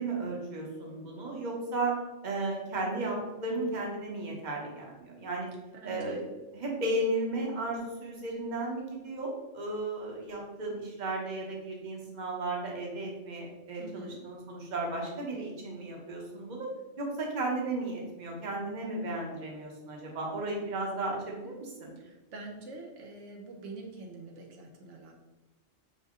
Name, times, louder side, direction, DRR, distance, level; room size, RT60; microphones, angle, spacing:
voice 1, 0.0-2.0 2.2-5.5 5.8-6.2 6.5-16.7 17.0-21.9, right 2 dB, 40° right, -1 dB, 1.0 m, -34 dB
voice 2, 5.8-6.2 13.8-14.2 22.0-25.1, right 2 dB, 80° right, 0 dB, 1.1 m, -45 dB
5.5 x 2.7 x 3.6 m, 1.1 s
omnidirectional pair, 1.2 m